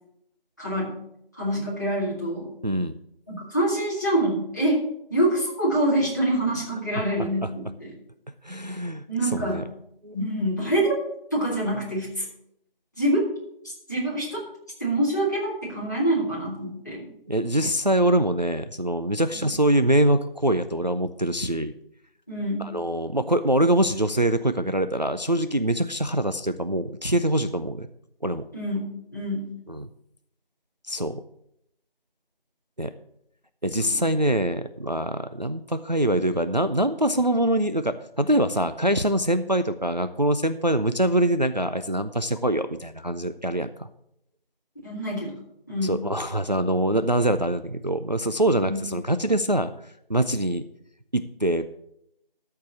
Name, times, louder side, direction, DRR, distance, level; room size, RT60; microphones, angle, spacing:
voice 1, 0.6-1.0 1.3-2.5 3.4-4.8 5.1-7.9 9.1-9.7 10.1-10.9 11.3-12.3 13.0-13.2 13.9-14.4 14.8-17.0 19.3-19.4 22.3-22.7 28.5-29.5 33.8-34.0 44.8-45.4 45.7-46.0 48.5-48.8, right 1 dB, 20° left, -7 dB, 2.1 m, -26 dB
voice 2, 2.6-2.9 8.4-9.0 9.3-9.6 10.0-10.1 17.3-21.7 22.7-27.9 28.2-28.4 29.7-29.9 30.9-31.2 32.8-32.9 33.6-43.9 45.8-49.7 50.1-50.6 51.1-51.6, right 1 dB, 50° right, 10 dB, 0.4 m, -24 dB
13.5 x 4.7 x 6.9 m, 0.77 s
figure-of-eight pair, 175°, 29 cm